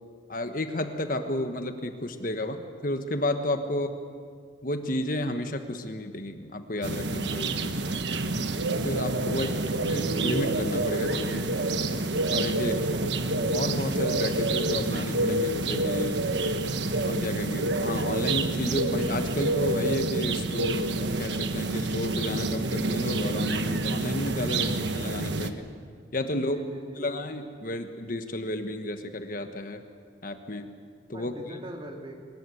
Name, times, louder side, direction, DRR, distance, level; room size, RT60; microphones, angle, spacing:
voice 1, 0.3-3.9 4.6-7.8 8.7-9.5 9.9-11.5 12.3-12.9 13.5-16.2 17.0-25.7 26.1-26.6 27.0-29.8 30.2-30.7 31.1-31.3, left 1 dB, 50° left, 7 dB, 1.4 m, -32 dB
sound 1, 6.8-25.5, right 2 dB, 70° right, 1.3 m, -28 dB
voice 2, 9.2-9.7 12.7-13.2 26.2-27.2 31.1-32.3, equal, 25° right, 1 dB, 2.6 m, -43 dB
22.5 x 21.0 x 8.4 m, 2.2 s
head